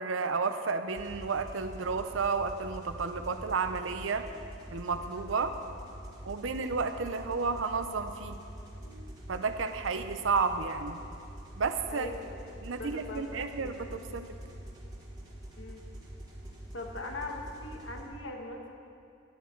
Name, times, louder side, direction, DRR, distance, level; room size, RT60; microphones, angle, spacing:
voice 1, 0.0-4.3 4.7-5.5 6.2-8.4 9.3-11.0 11.6-12.2 12.6-14.3, right 4 dB, 85° right, 8 dB, 0.6 m, -32 dB
sound 1, 0.9-18.0, right 1 dB, 20° right, 2.0 m, -45 dB
voice 2, 11.9-12.4 12.7-13.9 15.6-15.9 16.7-18.7, left 2 dB, 75° left, 2 dB, 1.2 m, -41 dB
11.0 x 9.4 x 4.5 m, 2.5 s
head